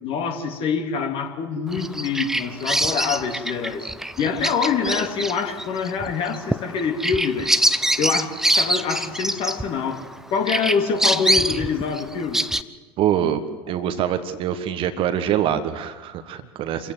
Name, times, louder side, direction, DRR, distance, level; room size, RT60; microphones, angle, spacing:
voice 1, 0.0-3.9 4.2-7.5 8.0-10.0 10.3-12.4, left 6 dB, 40° left, 4 dB, 2.7 m, -25 dB
Bird vocalization bird call bird song, 1.7-10.1 10.5-12.6, right 1 dB, 5° right, 0.7 m, -24 dB
voice 2, 13.0-13.4 13.7-16.9, right 10 dB, 40° right, 10 dB, 1.5 m, -24 dB
27.0 x 15.5 x 7.9 m, 1.4 s
figure-of-eight pair, 75°, 14 cm